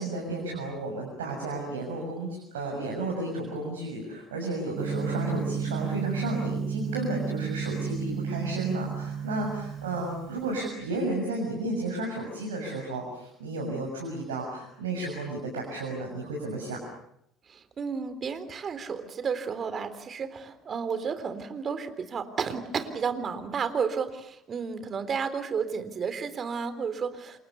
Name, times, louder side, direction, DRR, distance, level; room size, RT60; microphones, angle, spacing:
voice 1, 0.0-16.8, right 2 dB, 80° right, 0 dB, 6.8 m, -33 dB
Gong, 4.8-10.6, right 6 dB, 60° right, 4.4 m, -32 dB
voice 2, 17.5-27.4, right 6 dB, 40° right, 11 dB, 3.6 m, -32 dB
30.0 x 27.0 x 7.0 m, 0.76 s
hypercardioid pair, 60°, 0 cm